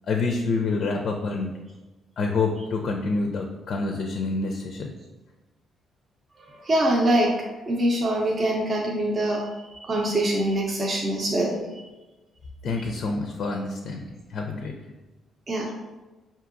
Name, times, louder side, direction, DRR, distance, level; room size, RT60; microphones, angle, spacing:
voice 1, 0.1-1.6 2.2-4.9 12.6-14.7, left 3 dB, 60° left, 2 dB, 0.4 m, -27 dB
voice 2, 6.6-7.3 7.7-9.4 9.8-11.6 15.5-15.7, right 1 dB, 40° right, -2 dB, 0.6 m, -23 dB
4.6 x 2.7 x 2.5 m, 1.2 s
cardioid pair, 90°, 0 cm